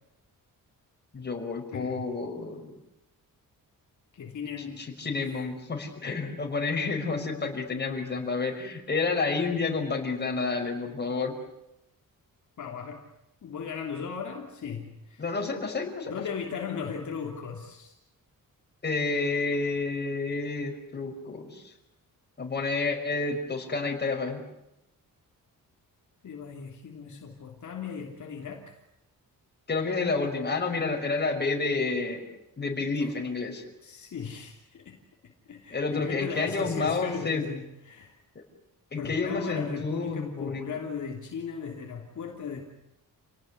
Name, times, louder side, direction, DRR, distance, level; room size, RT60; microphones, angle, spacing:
voice 1, 1.1-2.7 4.8-11.4 15.2-16.1 18.8-21.7 22.4-24.4 29.7-32.2 32.6-33.6 35.7-37.4 38.9-40.6, left 4 dB, 30° left, 2 dB, 5.4 m, -30 dB
voice 2, 1.7-2.1 4.1-4.9 12.6-13.0 13.4-15.2 16.0-17.9 26.2-28.7 32.8-33.1 33.8-38.1 39.0-42.6, left 6 dB, 55° left, 1 dB, 3.2 m, -37 dB
29.0 x 18.5 x 9.8 m, 0.88 s
wide cardioid pair, 140°, 35 cm